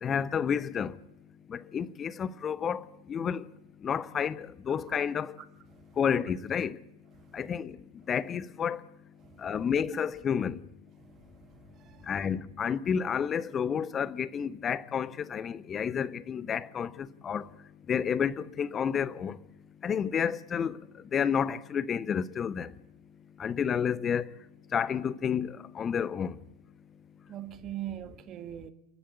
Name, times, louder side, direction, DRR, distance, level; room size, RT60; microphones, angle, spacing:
voice 1, 0.0-1.0 1.5-3.5 3.8-5.3 6.0-6.8 7.3-7.8 8.1-8.8 9.4-10.6 12.1-17.5 17.9-19.4 19.8-20.8 21.1-22.7 23.4-24.2 24.7-26.4, left 7 dB, 25° left, 0.7 m, -30 dB
voice 2, 11.0-12.1 27.3-28.7, right 12 dB, 30° right, 1.6 m, -42 dB
28.5 x 12.0 x 8.3 m
figure-of-eight pair, 90°, 0 cm